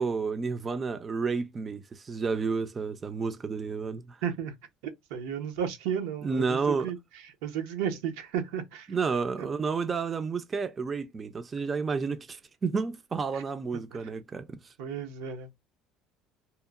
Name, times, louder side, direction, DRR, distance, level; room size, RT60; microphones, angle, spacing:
voice 1, 0.0-4.2 6.2-6.9 8.9-14.7, right 5 dB, 25° right, 0.3 m, -31 dB
voice 2, 4.2-4.5 5.1-7.0 7.4-8.9 13.3-13.4 13.9-14.0 14.8-15.5, right 8 dB, 90° right, 0.6 m, -33 dB
2.8 x 2.0 x 2.2 m
cardioid pair, 115°, 0 cm